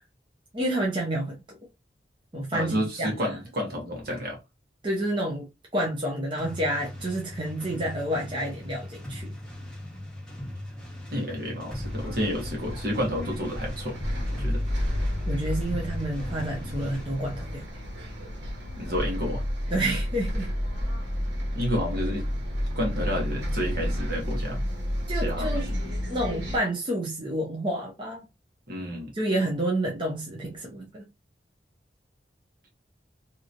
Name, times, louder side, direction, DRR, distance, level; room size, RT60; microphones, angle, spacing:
voice 1, 0.5-1.6 2.3-3.4 4.8-5.5 5.7-9.3 15.3-17.6 19.7-20.5 25.1-25.7 26.1-28.3 29.1-31.0, right 1 dB, 30° right, 0.7 m, -29 dB
voice 2, 2.5-4.4 11.1-14.0 14.3-14.6 18.8-19.4 21.5-22.3 22.7-24.6 25.1-25.5 28.7-29.1, equal, 60° right, 1.3 m, -30 dB
sound 1, 6.4-17.1, left 1 dB, 5° left, 1.1 m, -40 dB
Bus, 11.7-26.6, equal, 85° right, 1.5 m, -31 dB
3.0 x 2.8 x 2.5 m
head